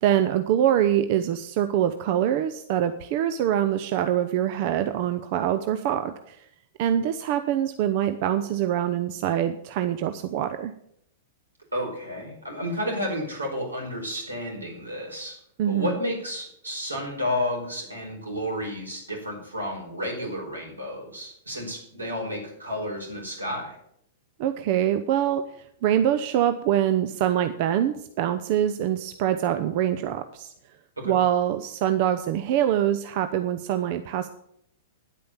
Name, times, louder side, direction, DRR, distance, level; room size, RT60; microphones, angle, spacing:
voice 1, 0.0-6.4 6.8-10.7 15.6-16.0 24.4-25.4 25.8-30.5 31.0-34.3, right 10 dB, 50° right, 9 dB, 0.7 m, -24 dB
voice 2, 11.7-15.4 15.7-23.8 31.0-31.2, left 1 dB, 90° right, 0 dB, 4.8 m, -31 dB
10.0 x 8.6 x 7.2 m, 0.72 s
figure-of-eight pair, 100°, 0 cm